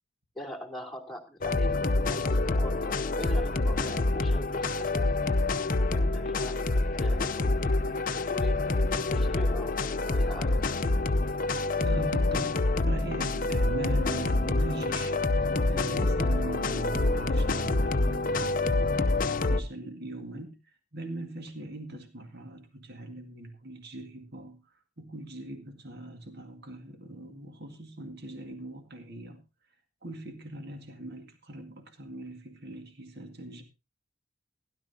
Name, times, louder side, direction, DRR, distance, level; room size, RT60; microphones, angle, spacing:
voice 1, 0.3-5.4 5.9-7.6 8.2-8.7 9.1-9.7 10.1-10.7, left 1 dB, ahead, 2.7 m, -42 dB
sound 1, 1.4-19.6, left 2 dB, 40° left, 0.7 m, -27 dB
voice 2, 11.8-19.2 19.5-20.6 20.9-24.6 25.0-29.4 30.0-33.6, right 1 dB, 50° right, 2.0 m, -40 dB
16.5 x 11.5 x 2.8 m
head